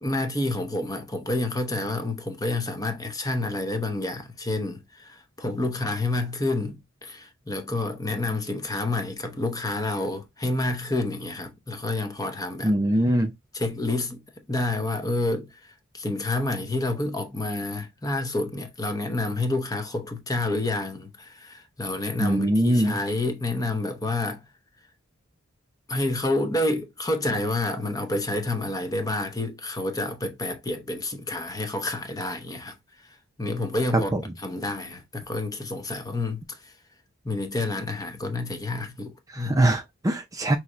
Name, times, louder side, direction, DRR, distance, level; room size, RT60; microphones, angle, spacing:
voice 1, 0.0-12.7 13.5-14.2 14.5-24.4 25.9-32.8 33.4-34.1 34.4-36.7 37.2-39.7, left 2 dB, 15° left, 0.8 m, -29 dB
voice 2, 12.6-13.3 22.2-23.0 33.9-34.2 39.3-40.6, right 1 dB, 15° right, 0.5 m, -22 dB
5.7 x 3.0 x 2.5 m
head